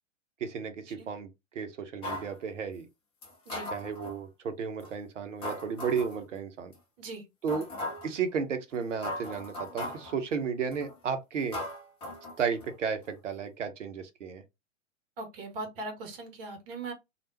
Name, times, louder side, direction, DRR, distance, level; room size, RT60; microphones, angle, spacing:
voice 1, 0.4-2.9 3.7-6.7 7.4-7.7 8.0-11.6 12.4-14.4, right 6 dB, 65° right, 0.8 m, -33 dB
sound 1, 2.0-2.3 3.2-4.2 4.8-4.9 5.4-6.2 6.7-6.8 7.5-8.1 8.7-8.8 9.0-10.1 10.7-11.0 11.5-12.7 13.0-13.1, left 1 dB, 15° left, 0.6 m, -38 dB
voice 2, 15.2-16.9, right 3 dB, 45° right, 1.1 m, -39 dB
3.2 x 2.4 x 2.9 m
figure-of-eight pair, 105°, 39 cm